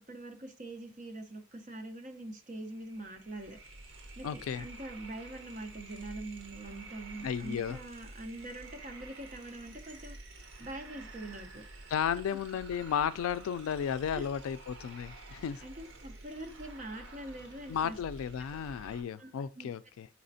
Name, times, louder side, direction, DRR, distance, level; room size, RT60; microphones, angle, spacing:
voice 1, 0.0-3.6 4.2-10.2 10.6-11.6 14.1-14.2 15.6-18.0 19.2-19.3 19.6-19.7, right 1 dB, 35° right, 0.6 m, -44 dB
sound 1, 2.0-2.1 2.3-19.0, right 2 dB, 70° right, 0.9 m, -50 dB
voice 2, 4.2-4.7 7.2-7.8 11.9-15.6 17.7-20.1, left 8 dB, 85° left, 0.3 m, -34 dB
4.3 x 4.1 x 2.6 m
head